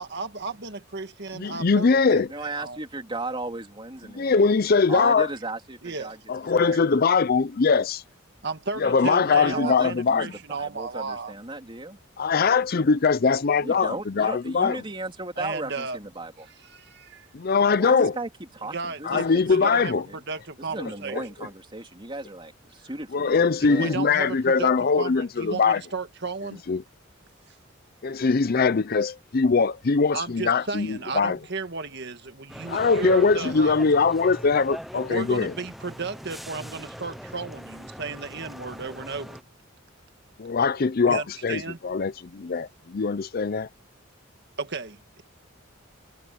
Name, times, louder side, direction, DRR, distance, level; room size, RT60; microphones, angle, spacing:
voice 1, 0.0-2.8 5.8-6.2 8.4-11.3 15.4-16.0 16.7-17.3 18.7-21.2 23.6-26.6 30.1-33.8 34.9-39.4 41.1-41.8 44.6-45.2, right 4 dB, 55° right, 1.8 m, -34 dB
voice 2, 1.3-2.3 4.1-5.3 6.3-8.0 8.8-10.3 12.2-14.8 17.3-18.2 19.1-20.0 21.1-21.2 23.1-25.8 26.7-26.8 28.0-31.4 32.7-35.5 40.4-43.7, left 5 dB, 45° left, 0.5 m, -22 dB
voice 3, 2.3-4.4 4.9-6.2 6.4-6.8 9.2-12.0 13.6-16.5 17.7-20.2 20.6-24.0, right 2 dB, 25° right, 3.5 m, -36 dB
sound 1, 32.5-39.4, equal, ahead, 0.6 m, -41 dB
head